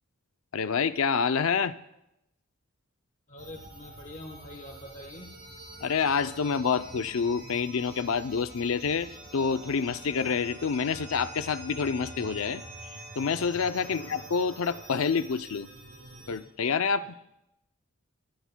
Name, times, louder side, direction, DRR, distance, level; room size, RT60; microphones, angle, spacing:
voice 1, 0.5-1.7 5.8-15.7 16.3-17.1, left 5 dB, 70° left, 12 dB, 0.5 m, -28 dB
voice 2, 3.3-5.5 13.8-14.2, left 1 dB, 35° left, 2 dB, 1.0 m, -45 dB
sound 1, 3.4-16.4, right 1 dB, 55° right, 5.6 m, -46 dB
Brass instrument, 9.1-14.9, equal, 30° right, 5.4 m, -52 dB
21.5 x 15.5 x 2.3 m, 0.85 s
head